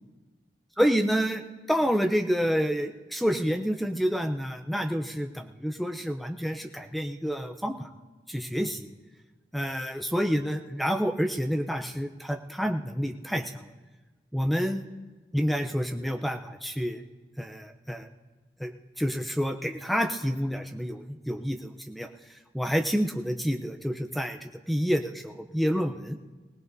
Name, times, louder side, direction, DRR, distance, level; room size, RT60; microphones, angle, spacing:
voice 1, 0.8-1.4 1.7-7.9 8.3-8.9 9.5-13.7 14.3-14.9 15.3-17.0 17.4-18.1 18.6-18.7 19.0-22.1 22.5-26.2, equal, ahead, 5 dB, 0.6 m, -28 dB
23.0 x 17.5 x 2.7 m, 1.3 s
head